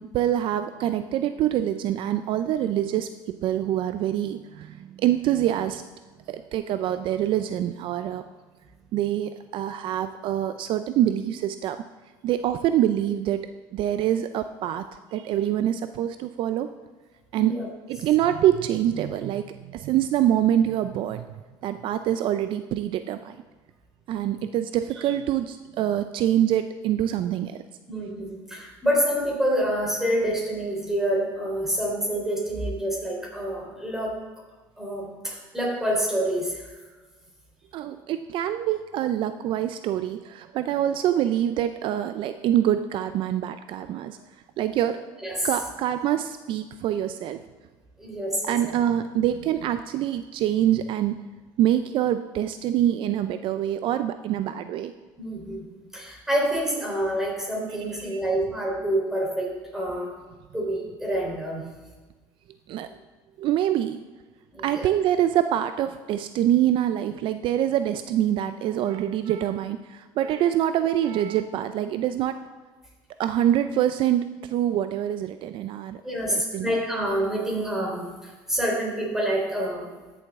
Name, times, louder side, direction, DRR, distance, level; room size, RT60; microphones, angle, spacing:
voice 1, 0.1-5.8 6.3-8.2 8.9-11.8 12.2-13.5 13.7-14.8 15.1-16.7 17.3-17.5 17.9-21.3 21.6-23.4 24.1-27.6 37.7-44.2 44.6-45.0 45.4-47.4 48.4-51.2 51.6-54.9 58.1-58.2 62.7-62.9 63.4-64.0 64.6-72.4 73.2-76.0 76.3-76.7, right 11 dB, 60° right, 10 dB, 0.4 m, -25 dB
voice 2, 17.3-17.7 27.9-34.2 34.8-36.7 45.2-45.5 48.0-48.7 55.2-60.2 60.5-61.6 64.5-64.9 76.0-79.9, right 1 dB, 5° right, -2 dB, 3.6 m, -27 dB
14.0 x 7.1 x 3.6 m, 1.3 s
cardioid pair, 110°, 10 cm